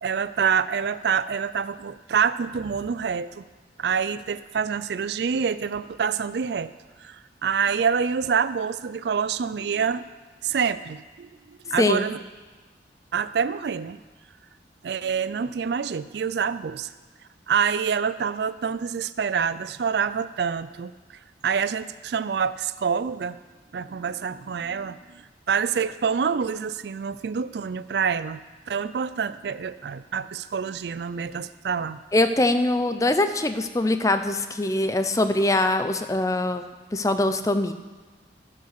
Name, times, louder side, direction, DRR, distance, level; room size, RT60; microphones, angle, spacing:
voice 1, 0.0-3.4 3.8-6.7 7.0-10.1 10.4-12.2 13.1-14.0 14.8-16.9 17.5-20.9 21.4-23.4 23.7-28.4 28.7-32.0, right 6 dB, 65° right, 15 dB, 0.4 m, -26 dB
voice 2, 32.1-36.7 36.9-37.7, left 2 dB, 20° left, 9 dB, 0.5 m, -22 dB
15.5 x 5.4 x 6.6 m, 1.3 s
head